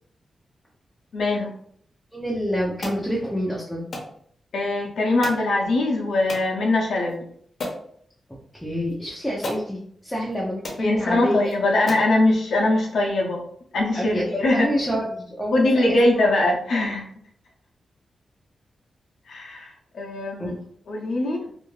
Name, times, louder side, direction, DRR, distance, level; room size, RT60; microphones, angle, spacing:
voice 1, 1.1-1.5 4.5-7.3 10.8-13.4 13.7-14.7 15.5-17.1 19.3-20.5 20.9-21.5, left 2 dB, 80° left, 0 dB, 0.6 m, -22 dB
voice 2, 2.1-3.9 8.5-11.5 13.9-16.3 20.4-20.6, equal, ahead, -5 dB, 0.5 m, -28 dB
sound 1, 2.8-3.0 3.9-4.1 5.2-5.5 6.3-6.5 7.1-7.2 7.6-7.8 8.9-9.0 9.4-9.7 10.3-10.4 10.6-10.8 11.4-11.5 11.9-12.1, left 1 dB, 45° left, 0.7 m, -33 dB
2.7 x 2.5 x 3.1 m, 0.65 s
wide cardioid pair, 170°, 0 cm